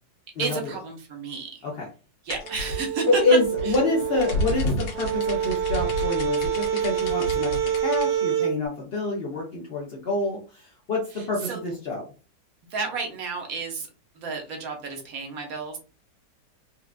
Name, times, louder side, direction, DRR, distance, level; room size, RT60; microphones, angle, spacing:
voice 1, 0.4-1.7 2.2-3.4 3.6-3.8 11.1-11.6 12.7-13.9 14.1-15.8, right 4 dB, 60° right, 2 dB, 1.2 m, -32 dB
sound 1, 2.3-8.1, left 1 dB, 85° left, 1.6 m, -31 dB
sound 2, 2.4-8.5, right 9 dB, 80° right, 1.9 m, -27 dB
voice 2, 3.1-12.0, left 3 dB, 50° left, -4 dB, 0.8 m, -27 dB
4.4 x 2.4 x 2.4 m, 0.34 s
omnidirectional pair, 1.9 m